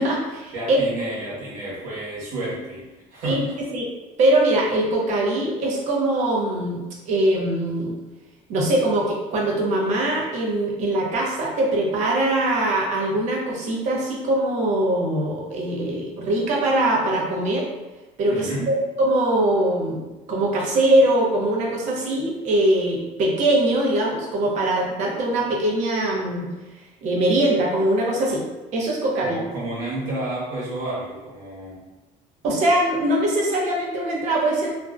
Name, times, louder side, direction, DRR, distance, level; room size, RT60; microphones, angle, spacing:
voice 1, 0.0-0.8 3.2-3.4 3.7-3.9 4.2-8.0 8.5-17.7 18.2-18.5 19.0-26.5 27.0-28.4 28.7-29.4 32.4-34.7, right 1 dB, 55° right, -2 dB, 0.6 m, -22 dB
voice 2, 0.5-2.8 3.1-3.7 18.3-18.7 29.2-31.8, right 1 dB, 70° right, -7 dB, 1.1 m, -30 dB
2.5 x 2.1 x 2.4 m, 1.1 s
cardioid pair, 165°, 15 cm